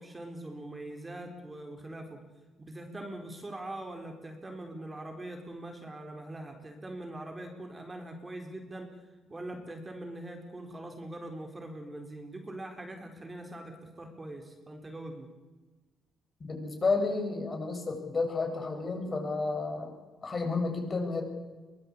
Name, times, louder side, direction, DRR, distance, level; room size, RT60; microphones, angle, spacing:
voice 1, 0.0-2.2 2.6-8.9 9.3-15.3, right 1 dB, 20° right, 4 dB, 4.3 m, -42 dB
voice 2, 16.4-19.9 20.2-21.2, left 3 dB, 35° left, 3 dB, 7.1 m, -31 dB
23.5 x 19.0 x 8.7 m, 1.2 s
cardioid pair, 90°, 0 cm